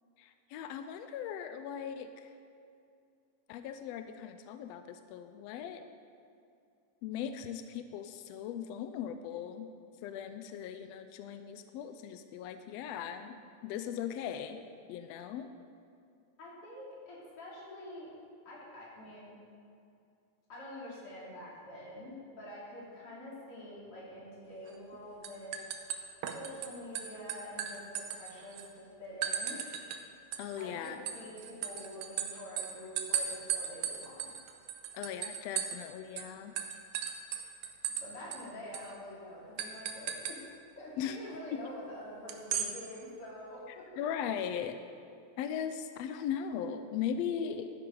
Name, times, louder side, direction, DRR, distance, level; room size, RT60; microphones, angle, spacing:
voice 1, 0.2-2.3 3.5-5.8 7.0-9.7 10.0-14.6 14.9-15.5 30.4-31.0 34.9-36.5 41.0-41.2 41.5-41.6 44.0-44.8 45.4-47.7, left 8 dB, 85° left, 8 dB, 1.5 m, -38 dB
voice 2, 16.4-18.1 18.5-19.4 20.5-25.6 26.3-29.6 30.6-34.3 38.0-40.5 40.8-44.0, left 1 dB, 45° left, -6 dB, 3.8 m, -46 dB
sound 1, 24.7-25.0 25.2-26.7 27.0-28.7 29.2-30.0 30.3-35.9 36.2-36.3 36.6-38.1 38.3-38.4 38.7-38.9 39.6-40.4 42.3-42.7, right 8 dB, 75° right, 2.0 m, -36 dB
13.5 x 10.5 x 3.9 m, 2.5 s
omnidirectional pair, 3.5 m